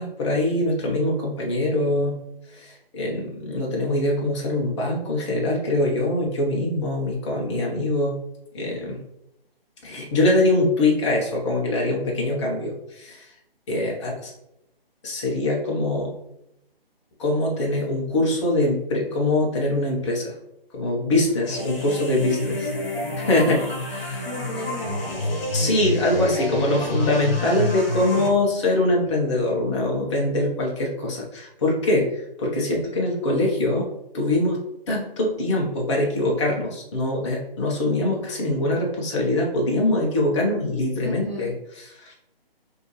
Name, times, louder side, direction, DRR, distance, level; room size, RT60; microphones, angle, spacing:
voice 1, 0.0-2.2 2.5-8.2 8.5-9.0 9.8-13.3 13.7-14.3 15.0-16.1 17.2-20.3 20.7-22.7 23.2-24.3 25.5-33.9 34.1-34.6 34.9-41.5 42.0-42.2, left 1 dB, 30° left, -2 dB, 0.8 m, -23 dB
sound 1, 21.4-28.3, left 1 dB, 65° left, 1.2 m, -28 dB
voice 2, 24.2-25.5 41.0-41.5, equal, 5° left, -13 dB, 1.2 m, -35 dB
4.4 x 2.7 x 3.1 m, 0.83 s
figure-of-eight pair, 145°, 30 cm